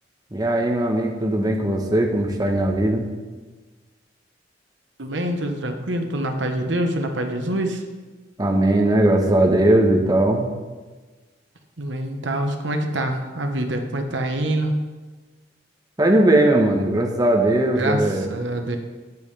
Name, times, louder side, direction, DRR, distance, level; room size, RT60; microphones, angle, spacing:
voice 1, 0.3-3.1 8.4-10.5 16.0-18.3, right 1 dB, 20° right, 1 dB, 1.1 m, -19 dB
voice 2, 5.0-7.8 11.8-14.8 17.8-18.8, right 1 dB, 70° right, 5 dB, 1.1 m, -25 dB
14.0 x 8.9 x 3.4 m, 1.3 s
head